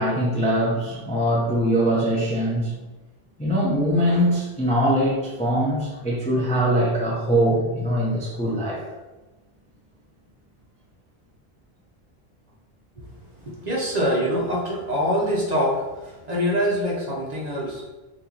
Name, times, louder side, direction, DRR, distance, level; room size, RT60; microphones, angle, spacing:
voice 1, 0.0-2.7 3.4-8.8, equal, 10° left, -5 dB, 0.4 m, -22 dB
voice 2, 13.4-17.8, equal, 45° right, -3 dB, 0.7 m, -24 dB
3.0 x 2.7 x 3.8 m, 1.1 s
omnidirectional pair, 1.1 m